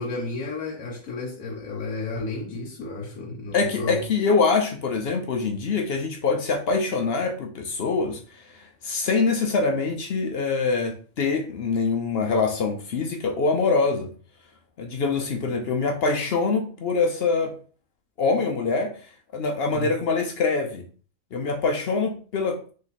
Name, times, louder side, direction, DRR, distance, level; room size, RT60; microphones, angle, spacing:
voice 1, 0.0-4.0 19.7-19.9, left 3 dB, 90° left, 1.2 m, -32 dB
voice 2, 3.5-14.1 14.8-17.5 18.2-18.9 19.3-20.8 21.3-22.7, left 4 dB, 60° left, 0.7 m, -24 dB
3.2 x 3.0 x 4.0 m
omnidirectional pair, 1.4 m